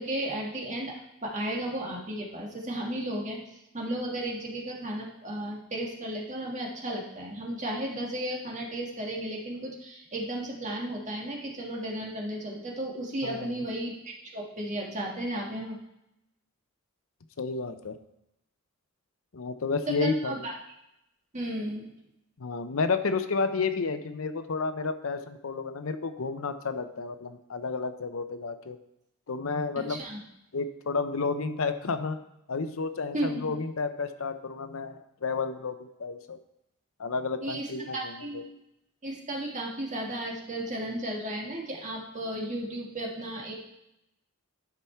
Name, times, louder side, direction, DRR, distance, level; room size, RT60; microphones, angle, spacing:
voice 1, 0.0-3.4 3.7-15.8 19.9-20.5 21.3-21.9 29.9-30.2 33.1-33.5 37.4-38.4 39.0-43.5, right 1 dB, 35° right, -1 dB, 1.7 m, -34 dB
voice 2, 13.2-13.7 17.4-17.9 19.3-20.5 22.4-28.8 29.3-30.0 30.5-32.2 32.5-36.4 37.0-38.4, left 4 dB, 65° left, 10 dB, 0.6 m, -31 dB
10.5 x 5.7 x 4.5 m, 0.86 s
head